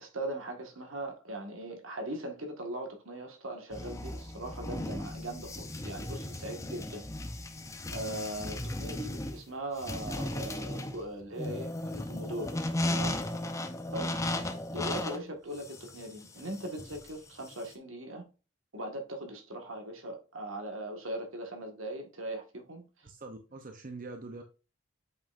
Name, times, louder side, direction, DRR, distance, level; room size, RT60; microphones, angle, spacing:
voice 1, 0.0-7.0 7.3-7.4 7.9-13.2 13.9-14.2 14.7-18.3 18.7-22.9, right 1 dB, 75° right, 1.7 m, -40 dB
sound 1, 3.7-17.7, left 1 dB, 15° left, 0.6 m, -36 dB
voice 2, 23.0-24.4, right 3 dB, 40° right, 0.8 m, -44 dB
7.9 x 5.5 x 2.6 m
head